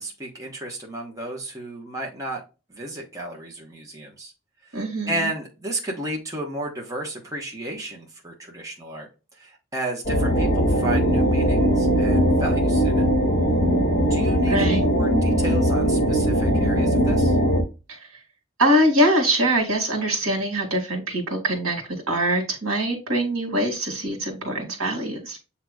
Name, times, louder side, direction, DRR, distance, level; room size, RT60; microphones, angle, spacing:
voice 1, 0.0-2.4 2.7-4.3 4.7-9.1 9.4-13.0 14.1-17.4, right 2 dB, 15° right, -2 dB, 1.1 m, -33 dB
voice 2, 4.7-5.3 14.5-14.9 17.9-18.0 18.6-25.4, right 1 dB, 75° right, 2 dB, 1.8 m, -23 dB
sound 1, 10.0-17.6, equal, 35° left, 1.4 m, -20 dB
7.6 x 2.9 x 2.3 m, 0.29 s
head